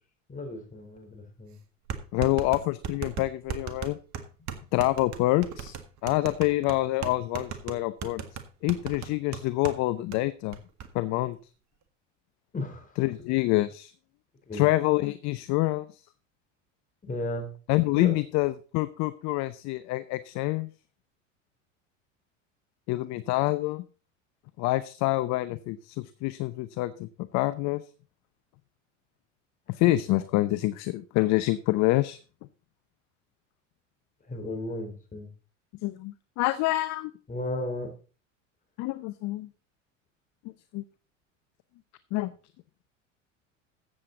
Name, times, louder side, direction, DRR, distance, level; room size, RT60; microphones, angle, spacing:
voice 1, 0.3-1.6 12.5-12.9 14.5-14.6 17.0-17.5 17.9-18.2 34.3-35.3 37.3-37.9, left 1 dB, 20° left, 4 dB, 4.1 m, -34 dB
sound 1, 1.0-1.1 1.9-9.8 10.1-10.2 10.5-10.9, right 7 dB, 45° right, 1.8 m, -37 dB
voice 2, 2.1-4.0 4.7-5.8 6.0-8.2 8.6-10.6 10.9-11.4 13.0-13.9 14.5-16.0 17.7-20.7 22.9-23.8 24.6-27.8 29.7-32.2 35.8-37.1 38.8-39.5 40.7-40.8 42.1-42.3, left 18 dB, 45° left, 13 dB, 0.8 m, -26 dB
14.5 x 7.7 x 4.0 m, 0.35 s
hypercardioid pair, 80°, 38 cm